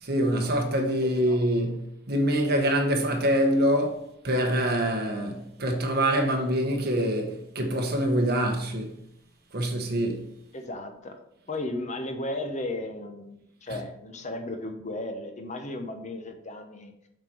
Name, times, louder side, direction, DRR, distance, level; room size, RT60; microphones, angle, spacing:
voice 1, 0.0-8.9 9.5-10.2, equal, 55° right, 1.3 m, -25 dB
voice 2, 1.0-1.5 10.5-11.1 11.5-16.9, left 2 dB, 40° left, 0.9 m, -35 dB
7.7 x 4.4 x 4.5 m
head